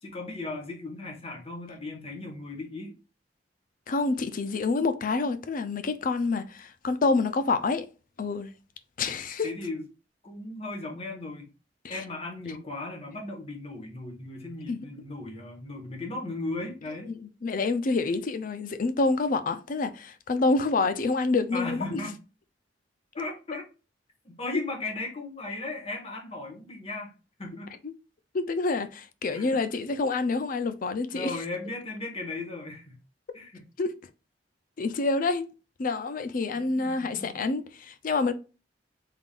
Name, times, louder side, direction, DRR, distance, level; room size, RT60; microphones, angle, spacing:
voice 1, 0.0-2.9 9.4-9.9 10.2-11.5 11.9-17.1 21.5-22.2 23.2-23.6 24.2-27.1 27.4-27.7 29.3-29.6 31.1-33.0 33.3-33.6 36.5-37.4, left 2 dB, 35° left, 1.2 m, -36 dB
voice 2, 3.9-7.9 8.2-8.5 9.0-9.5 11.8-12.0 14.7-14.9 17.1-22.0 27.8-27.9 28.3-31.3 33.8-33.9 34.8-35.4 35.8-38.3, left 3 dB, 50° left, 0.4 m, -27 dB
3.7 x 3.6 x 2.4 m
head